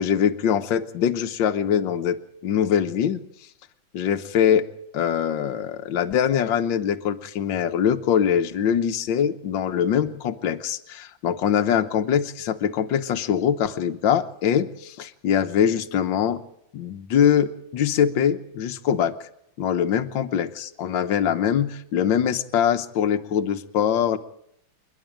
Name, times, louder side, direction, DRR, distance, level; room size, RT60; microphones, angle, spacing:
voice 1, 0.0-3.2 3.9-4.7 4.9-16.4 16.7-19.1 19.6-24.2, left 8 dB, 70° left, 8 dB, 1.7 m, -23 dB
28.5 x 11.0 x 9.0 m, 0.75 s
omnidirectional pair, 2.1 m